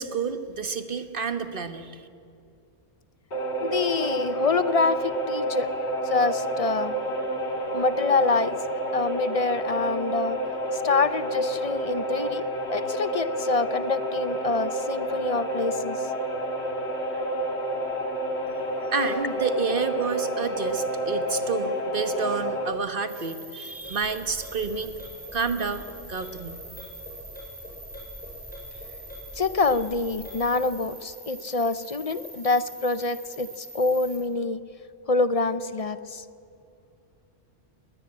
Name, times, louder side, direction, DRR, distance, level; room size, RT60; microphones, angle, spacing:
voice 1, 0.0-2.1 18.9-24.9 25.3-26.6, right 5 dB, 55° right, 9 dB, 1.4 m, -29 dB
sound 1, 3.3-22.7, equal, 75° left, 2.1 m, -29 dB
voice 2, 3.6-5.7 6.0-6.9 7.7-8.5 8.9-10.4 10.7-12.4 12.7-16.0 29.4-34.6 35.1-36.2, left 3 dB, 40° left, 14 dB, 0.6 m, -26 dB
sound 2, 23.1-34.2, right 2 dB, 10° right, 7.6 m, -44 dB
sound 3, 23.8-30.7, equal, 10° left, 6.6 m, -44 dB
20.5 x 20.0 x 8.8 m, 2.6 s
omnidirectional pair, 1.1 m